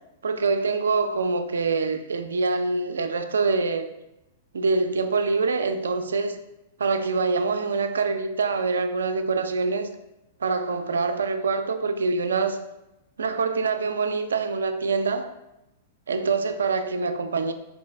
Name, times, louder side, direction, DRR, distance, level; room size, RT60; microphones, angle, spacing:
voice 1, 0.2-3.9 4.5-6.4 6.8-9.9 10.4-12.6 13.2-15.3 16.1-17.5, right 4 dB, 80° right, 0.3 m, -25 dB
4.5 x 2.6 x 3.2 m
hypercardioid pair, 110°, 0 cm